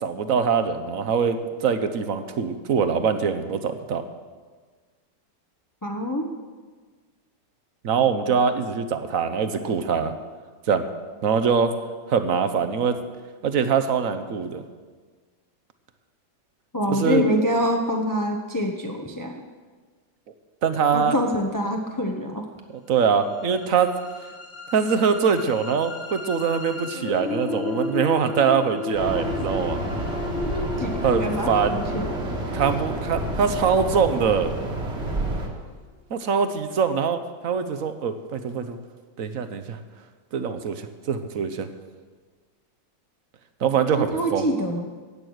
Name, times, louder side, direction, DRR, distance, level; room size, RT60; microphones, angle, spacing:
voice 1, 0.0-4.0 7.8-10.1 10.7-10.9 11.2-11.7 12.1-13.0 13.4-14.6 16.9-17.2 20.6-21.2 22.9-23.9 24.7-29.8 31.0-31.8 32.5-34.5 36.1-38.8 39.2-39.8 40.3-41.7 43.6-44.5, right 6 dB, 55° right, 10 dB, 1.0 m, -23 dB
voice 2, 5.8-6.3 16.7-19.3 20.9-22.4 30.5-32.1 44.0-44.8, equal, 20° left, 0 dB, 0.6 m, -25 dB
sound 1, 23.1-35.1, left 3 dB, 70° left, 2.3 m, -34 dB
sound 2, 28.9-35.5, right 1 dB, 35° right, 1.8 m, -29 dB
15.5 x 8.9 x 6.4 m, 1.5 s
omnidirectional pair, 2.1 m